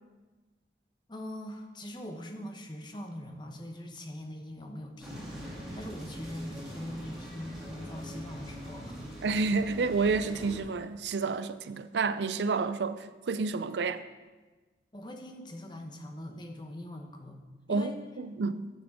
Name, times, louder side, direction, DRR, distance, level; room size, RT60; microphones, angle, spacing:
voice 1, 1.1-5.3 5.7-9.0 14.9-17.4 17.7-18.0, left 1 dB, 25° left, 1.0 m, -42 dB
sound 1, 5.0-10.6, equal, 5° right, 2.3 m, -43 dB
voice 2, 9.2-14.0 17.7-17.9 18.2-18.7, right 4 dB, 85° right, 0.5 m, -29 dB
11.0 x 7.2 x 5.0 m
head